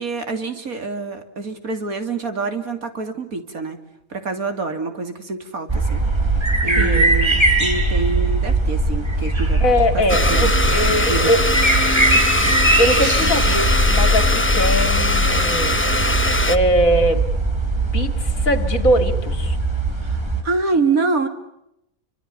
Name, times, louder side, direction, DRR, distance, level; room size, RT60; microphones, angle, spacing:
voice 1, 0.0-3.8 4.1-6.0 6.3-10.5 10.9-11.3 20.0-21.3, right 3 dB, 85° right, 7 dB, 3.4 m, -26 dB
sound 1, 5.7-20.4, right 2 dB, 20° right, 4.7 m, -20 dB
voice 2, 6.8-7.1 9.6-11.4 12.8-15.8 16.5-17.3 17.9-19.6, equal, 70° left, 9 dB, 3.0 m, -21 dB
Domestic sounds home sounds, 10.1-16.6, left 1 dB, 10° left, 0.9 m, -21 dB
30.0 x 25.0 x 7.0 m, 0.82 s
omnidirectional pair, 1.5 m